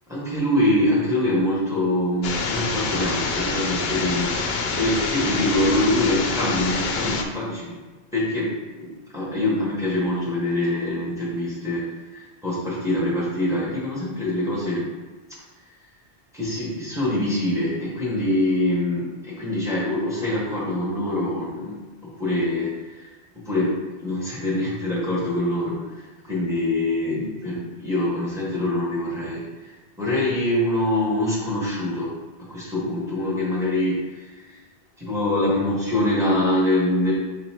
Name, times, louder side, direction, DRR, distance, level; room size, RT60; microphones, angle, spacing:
voice 1, 0.1-7.7 8.1-8.9 9.1-14.9 16.3-21.8 22.2-23.1 23.4-23.7 24.0-29.7 30.0-32.1 32.4-34.6 35.0-37.1, left 1 dB, 5° right, -6 dB, 1.3 m, -24 dB
sound 1, 2.2-7.2, left 4 dB, 70° left, 0.8 m, -26 dB
4.5 x 4.0 x 2.9 m, 1.3 s
omnidirectional pair, 1.1 m